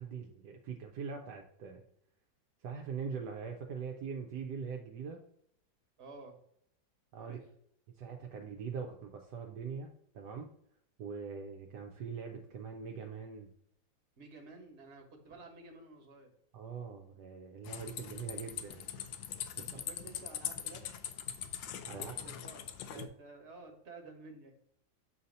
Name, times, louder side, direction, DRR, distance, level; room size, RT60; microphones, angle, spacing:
voice 1, 0.0-1.8 2.6-5.2 7.1-7.4 8.0-9.9 10.1-10.5 11.0-13.5 16.5-18.9 19.6-19.7 21.9-22.1 22.9-23.1, right 6 dB, 70° right, 2 dB, 1.2 m, -42 dB
voice 2, 6.0-6.4 7.2-7.5 14.2-16.3 19.6-21.1 22.0-24.5, right 3 dB, 40° right, 2 dB, 1.4 m, -52 dB
sound 1, 17.6-23.1, left 10 dB, 90° left, 1.4 m, -42 dB
7.8 x 2.8 x 5.2 m, 0.70 s
omnidirectional pair, 2.0 m